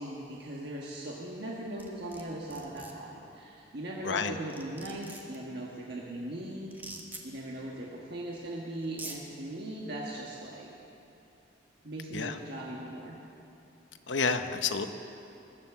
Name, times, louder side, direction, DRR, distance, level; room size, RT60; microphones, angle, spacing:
voice 1, 0.0-6.8 7.2-10.7 11.8-13.2, right 1 dB, 65° right, -3 dB, 1.4 m, -39 dB
sound 1, 1.8-2.2 2.5-2.9 4.1-4.2 4.5-5.4 6.7-7.2 8.3-8.4 8.8-9.2, right 2 dB, 10° right, 1.3 m, -43 dB
voice 2, 4.0-4.4 12.1-12.4 14.1-14.9, left 5 dB, 85° left, 8 dB, 0.8 m, -29 dB
21.0 x 7.5 x 7.1 m, 2.8 s
head